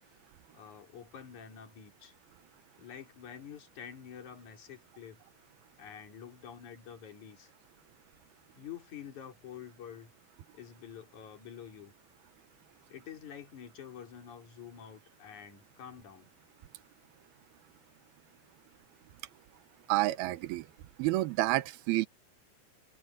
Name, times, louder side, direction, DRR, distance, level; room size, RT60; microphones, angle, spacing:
voice 1, 0.5-2.1 2.8-5.2 5.8-7.5 8.6-10.1 10.5-11.9 12.9-16.3, left 8 dB, 40° left, 5.1 m, -48 dB
voice 2, 19.9-20.7 21.0-22.1, right 18 dB, 85° right, 2.2 m, -29 dB
omnidirectional pair, 5.6 m